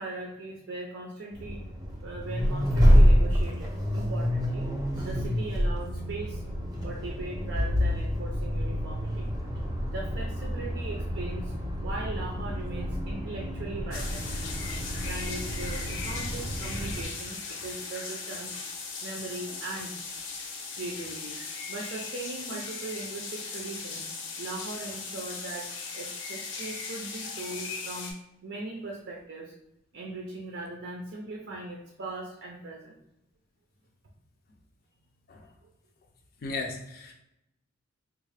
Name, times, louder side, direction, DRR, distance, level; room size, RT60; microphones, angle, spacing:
voice 1, 0.0-1.6 2.0-4.7 4.9-6.4 6.8-9.3 9.9-11.5 11.8-14.5 15.0-18.6 19.0-20.0 20.7-24.1 24.4-28.1 28.4-29.5 29.9-33.0 35.6-35.7, right 2 dB, 60° right, -1 dB, 0.5 m, -39 dB
Accelerating revving vroom, 1.3-17.0, equal, 20° right, 0.6 m, -27 dB
sound 1, 13.9-28.1, left 4 dB, 85° left, 0.7 m, -38 dB
voice 2, 36.4-37.1, left 3 dB, 50° left, 1 dB, 0.4 m, -35 dB
3.5 x 2.3 x 3.2 m, 0.84 s
head